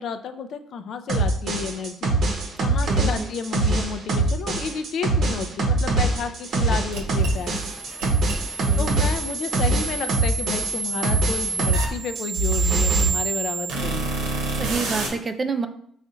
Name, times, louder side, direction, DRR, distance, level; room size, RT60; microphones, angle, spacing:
voice 1, 0.0-7.5 8.8-14.3, left 6 dB, 65° left, 8 dB, 0.4 m, -31 dB
sound 1, 1.1-11.9 12.2-13.1, right 2 dB, 55° right, 0.8 m, -23 dB
voice 2, 2.6-3.3 8.6-9.1 14.5-15.7, right 4 dB, 30° right, 8 dB, 0.4 m, -29 dB
sound 2, 6.9-15.1, right 4 dB, 85° right, 0.9 m, -29 dB
4.2 x 2.4 x 3.9 m, 0.65 s
cardioid pair, 85°, 0 cm